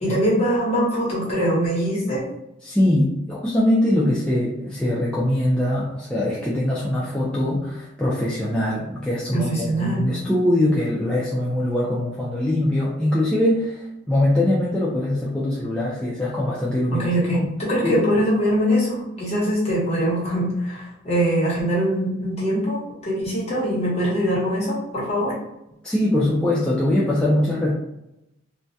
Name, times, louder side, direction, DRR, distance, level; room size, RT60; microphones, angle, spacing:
voice 1, 0.0-2.2 9.3-10.1 16.9-25.3, equal, 35° left, -6 dB, 0.9 m, -23 dB
voice 2, 2.6-17.1 17.3-17.5 17.8-18.0 25.8-27.7, left 1 dB, 5° left, -7 dB, 0.3 m, -22 dB
2.2 x 2.1 x 2.6 m, 0.87 s
head